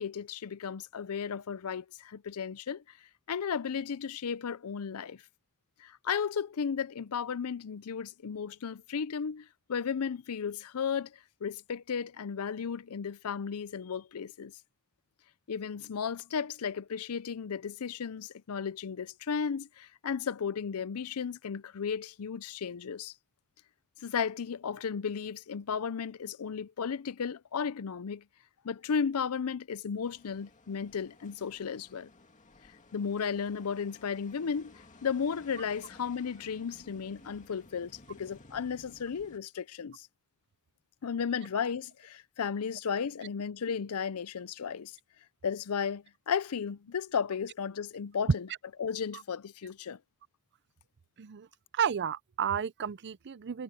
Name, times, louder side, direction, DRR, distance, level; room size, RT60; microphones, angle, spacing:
voice 1, 0.0-2.8 3.3-5.2 5.8-11.1 11.4-14.5 15.5-23.1 24.0-28.2 28.6-32.1 32.9-40.1 41.0-44.9 45.4-48.5 48.8-50.0, left 6 dB, 75° left, 0.5 m, -34 dB
sound 1, 30.0-39.4, left 2 dB, 35° left, 2.2 m, -57 dB
voice 2, 51.7-53.6, right 8 dB, 50° right, 0.5 m, -32 dB
head